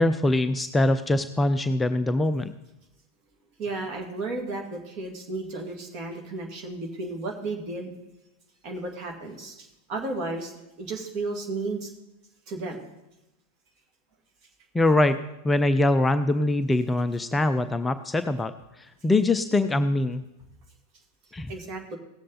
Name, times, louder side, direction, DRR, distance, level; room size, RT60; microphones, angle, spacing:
voice 1, 0.0-2.5 14.7-15.2 15.4-18.5 19.0-20.2 21.3-21.5, left 2 dB, 10° left, 9 dB, 0.4 m, -23 dB
voice 2, 3.6-7.9 8.6-11.9 12.5-12.9 21.5-22.0, right 3 dB, 40° right, 2 dB, 2.2 m, -33 dB
17.5 x 7.4 x 4.1 m, 0.94 s
figure-of-eight pair, 90°, 0 cm